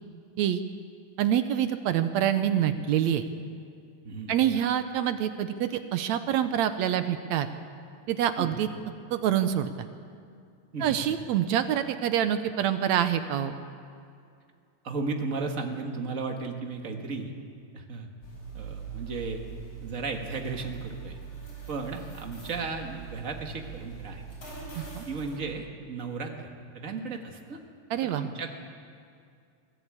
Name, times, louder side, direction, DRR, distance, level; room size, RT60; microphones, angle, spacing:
voice 1, 1.2-3.3 4.3-7.5 8.1-8.7 9.1-9.9 10.8-13.5 24.8-25.0 27.9-28.3, right 10 dB, 70° right, 10 dB, 1.8 m, -26 dB
voice 2, 14.8-17.3 17.7-18.1 18.5-19.4 19.8-21.2 21.7-24.2 25.1-27.6 28.0-28.6, right 4 dB, 40° right, 3 dB, 1.2 m, -35 dB
sound 1, 18.2-25.4, right 6 dB, 40° left, 5.9 m, -42 dB
23.0 x 15.0 x 8.5 m, 2.3 s
omnidirectional pair, 3.8 m